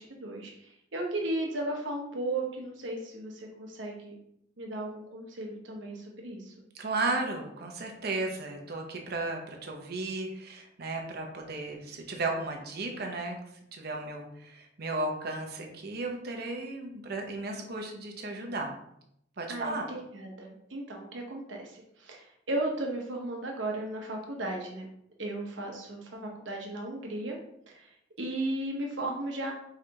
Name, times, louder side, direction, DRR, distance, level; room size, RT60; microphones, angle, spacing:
voice 1, 0.0-4.2 4.6-6.7 19.5-24.9 25.2-27.4 27.7-29.5, right 1 dB, 80° right, 1 dB, 1.0 m, -35 dB
voice 2, 6.7-13.4 13.7-18.7 19.4-19.9, right 2 dB, 55° right, 2 dB, 0.7 m, -34 dB
4.9 x 3.3 x 2.8 m, 0.75 s
head